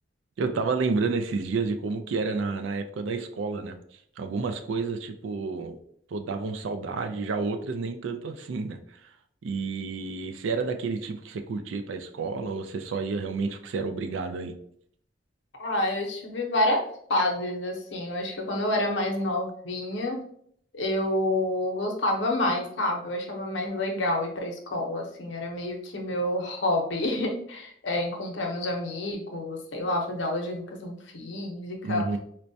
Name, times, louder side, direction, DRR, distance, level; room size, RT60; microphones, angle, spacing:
voice 1, 0.4-3.8 4.2-5.8 6.1-9.1 9.4-14.5 31.8-32.2, right 4 dB, 85° right, 7 dB, 0.4 m, -30 dB
voice 2, 15.6-16.8 17.1-20.2 20.7-32.1, left 1 dB, 75° left, 2 dB, 0.7 m, -28 dB
4.4 x 2.1 x 2.6 m, 0.65 s
head